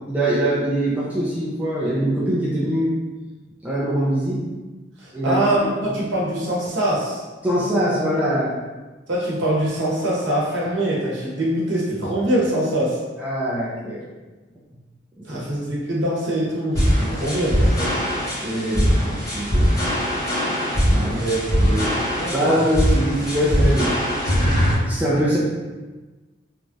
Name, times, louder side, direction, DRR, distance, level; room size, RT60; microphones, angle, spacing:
voice 1, 0.1-3.0 3.6-4.4 5.1-5.4 7.4-8.6 13.2-14.1 15.2-15.4 18.4-19.0 19.3-19.7 20.9-21.7 22.3-23.9 24.3-25.4, right 1 dB, 10° right, -8 dB, 0.4 m, -23 dB
voice 2, 5.0-7.2 9.1-13.0 15.2-18.0 21.0-21.4 21.7-21.9 22.2-22.6, right 1 dB, 70° right, -5 dB, 0.9 m, -23 dB
sound 1, 16.7-24.7, equal, 15° left, 0.9 m, -21 dB
3.0 x 2.3 x 2.6 m, 1.2 s
head